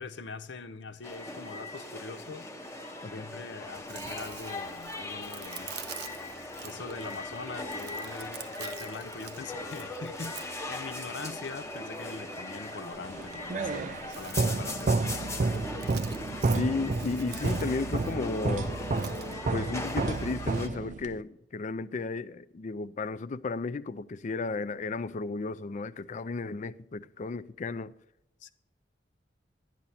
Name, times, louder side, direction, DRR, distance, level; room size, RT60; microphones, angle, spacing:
voice 1, 0.0-2.5 3.1-5.8 6.6-15.4 28.4-28.5, left 4 dB, 75° left, 0.7 m, -43 dB
sound 1, 1.0-20.7, left 2 dB, 15° left, 0.9 m, -39 dB
Chewing mastication, 3.6-19.3, right 9 dB, 65° right, 0.8 m, -48 dB
sound 2, 13.1-21.2, right 3 dB, 45° right, 0.4 m, -31 dB
voice 2, 16.5-18.7 19.5-27.9, left 3 dB, 45° left, 0.4 m, -34 dB
11.0 x 10.5 x 4.2 m
head